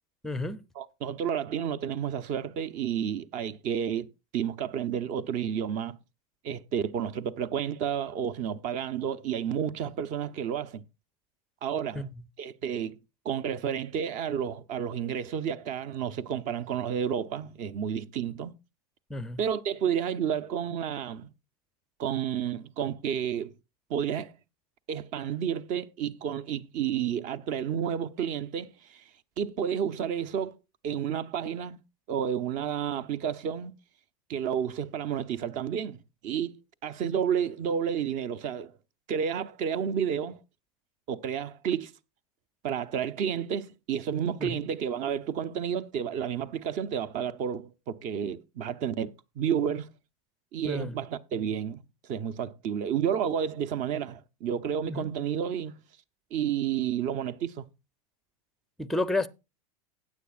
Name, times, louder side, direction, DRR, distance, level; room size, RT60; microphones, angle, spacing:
voice 1, 0.2-0.6 11.9-12.1 19.1-19.4 44.4-44.6 50.6-50.9 54.8-55.1 58.8-59.3, left 2 dB, ahead, 0.5 m, -31 dB
voice 2, 0.8-4.1 4.3-6.0 6.4-10.8 11.6-12.0 12.4-13.0 13.2-18.5 19.4-21.3 22.0-23.5 23.9-24.4 24.9-29.0 29.4-30.6 30.8-31.8 32.1-33.7 34.3-36.5 36.8-38.7 39.1-40.4 41.1-41.9 42.6-49.9 50.5-51.8 52.1-55.8 56.3-57.6, right 8 dB, 40° right, 0.8 m, -31 dB
15.5 x 9.5 x 2.4 m
supercardioid pair, 135°, 19 cm